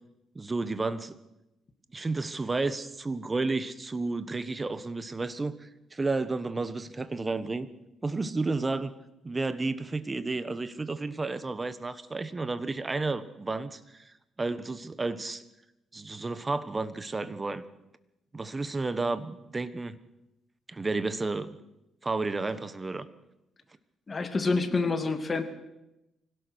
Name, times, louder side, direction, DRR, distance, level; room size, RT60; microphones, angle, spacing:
voice 1, 0.3-1.2 1.9-7.7 8.0-8.9 9.2-15.4 15.9-17.6 18.3-19.9 20.7-21.5 22.0-23.1, right 3 dB, 25° right, 13 dB, 1.4 m, -32 dB
voice 2, 24.1-25.4, left 3 dB, 35° left, 7 dB, 2.5 m, -27 dB
25.0 x 17.0 x 6.5 m, 0.92 s
cardioid pair, 90°, 0 cm